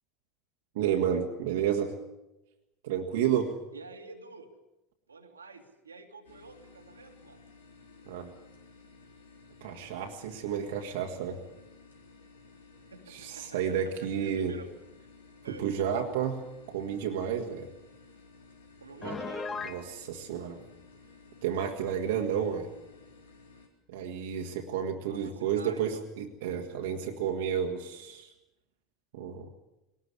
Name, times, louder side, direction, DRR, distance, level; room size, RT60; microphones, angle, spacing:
voice 1, 0.8-2.0 2.8-3.6 8.1-8.3 9.6-11.4 13.1-14.6 15.5-17.7 19.0-19.2 19.6-20.6 21.4-22.7 23.9-28.3 29.1-29.5, right 8 dB, 65° right, 2 dB, 1.8 m, -31 dB
voice 2, 3.7-4.5 5.1-7.4 12.9-14.7 15.4-15.6 18.8-19.5 25.1-26.1, right 3 dB, 85° right, 3 dB, 2.4 m, -48 dB
sound 1, 6.2-23.7, left 4 dB, 80° left, 3.8 m, -55 dB
Piano, 19.0-19.8, left 4 dB, 25° left, 1.7 m, -36 dB
21.5 x 19.0 x 8.4 m, 0.94 s
figure-of-eight pair, 75°, 0 cm